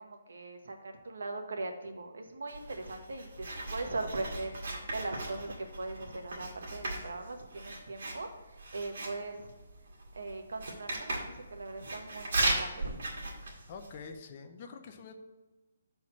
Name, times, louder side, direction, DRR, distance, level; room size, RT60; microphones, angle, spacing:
voice 1, 0.0-9.5 10.2-13.2, right 2 dB, 90° right, 4 dB, 1.2 m, -40 dB
Writing, 2.5-14.1, right 2 dB, 60° right, 2.0 m, -37 dB
voice 2, 13.7-15.2, left 5 dB, 30° left, 6 dB, 0.6 m, -46 dB
6.5 x 4.2 x 6.1 m, 1.2 s
hypercardioid pair, 175°, 0 cm